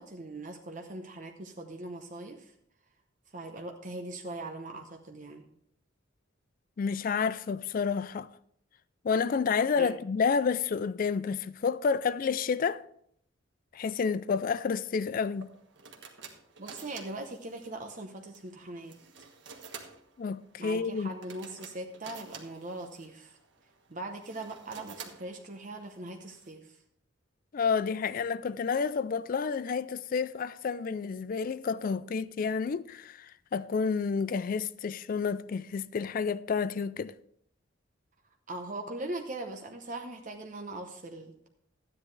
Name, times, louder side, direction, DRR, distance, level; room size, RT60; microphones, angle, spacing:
voice 1, 0.0-2.5 3.3-5.4 9.8-9.9 16.6-19.3 20.6-23.4 23.9-26.8 38.5-41.3, right 2 dB, 40° right, 0.8 m, -40 dB
voice 2, 6.8-8.3 9.0-12.8 13.7-15.5 20.2-21.1 27.5-37.1, left 5 dB, 45° left, 0.3 m, -30 dB
sound 1, 15.3-26.5, right 5 dB, 65° right, 1.4 m, -51 dB
13.0 x 9.7 x 3.2 m
head